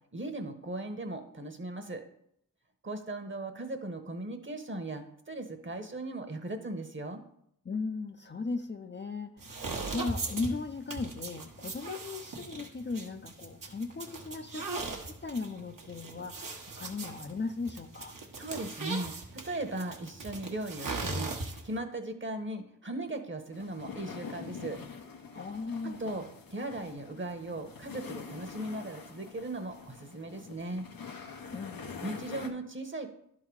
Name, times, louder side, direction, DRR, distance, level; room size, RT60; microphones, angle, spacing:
voice 1, 0.1-2.0 2.8-7.2 18.3-21.3 21.6-24.8 25.8-30.9 32.0-33.1, right 2 dB, 35° right, 7 dB, 1.1 m, -38 dB
voice 2, 7.6-18.2 25.3-26.0 31.5-31.9, left 4 dB, 35° left, 6 dB, 0.5 m, -37 dB
sound 1, 9.4-21.8, right 3 dB, 65° right, 1.2 m, -39 dB
sound 2, 23.5-32.5, left 5 dB, 85° left, 0.9 m, -45 dB
11.0 x 3.8 x 4.7 m, 0.72 s
cardioid pair, 45°, 34 cm